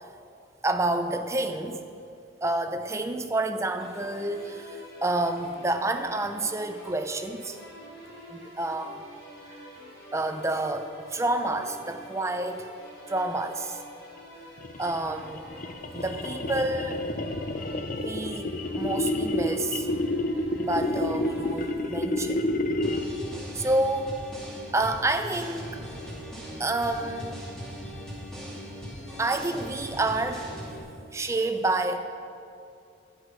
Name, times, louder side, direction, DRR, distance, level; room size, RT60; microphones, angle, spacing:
voice 1, 0.6-1.8 2.4-7.6 8.3-9.0 9.5-9.6 10.1-12.7 13.1-13.8 14.8-15.4 15.9-17.0 18.0-18.5 18.7-19.9 20.6-22.4 23.5-24.2 24.7-25.8 26.6-27.3 29.2-30.5 31.1-32.0, right 2 dB, 15° right, 7 dB, 0.6 m, -29 dB
sound 1, 3.8-21.7, equal, 80° left, 3.5 m, -47 dB
sound 2, 14.6-23.3, left 1 dB, 45° left, 0.6 m, -29 dB
sound 3, 22.8-30.8, equal, 5° left, 2.3 m, -39 dB
11.5 x 9.9 x 5.5 m, 2.5 s
head